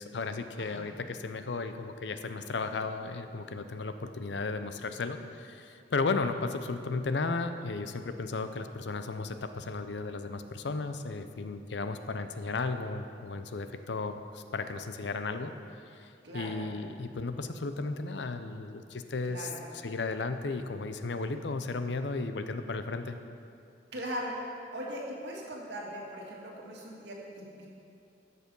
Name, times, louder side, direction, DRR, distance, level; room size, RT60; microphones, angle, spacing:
voice 1, 0.0-15.5 15.8-19.5 19.8-23.2, left 3 dB, 80° left, 9 dB, 0.6 m, -34 dB
voice 2, 0.6-0.9 16.2-16.6 19.2-19.6 23.9-27.7, equal, 75° right, -3 dB, 2.1 m, -39 dB
12.5 x 6.9 x 5.4 m, 2.5 s
head